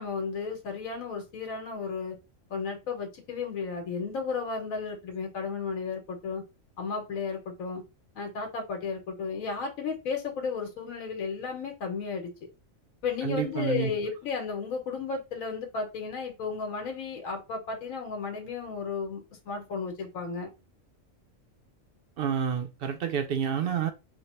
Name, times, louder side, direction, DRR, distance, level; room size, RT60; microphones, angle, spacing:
voice 1, 0.0-2.2 2.5-6.4 6.8-7.8 8.2-12.3 13.0-20.5, left 5 dB, 85° left, 1.3 m, -33 dB
voice 2, 13.2-13.9 22.2-23.9, right 8 dB, 65° right, 0.6 m, -29 dB
3.2 x 2.2 x 4.2 m
omnidirectional pair, 1.4 m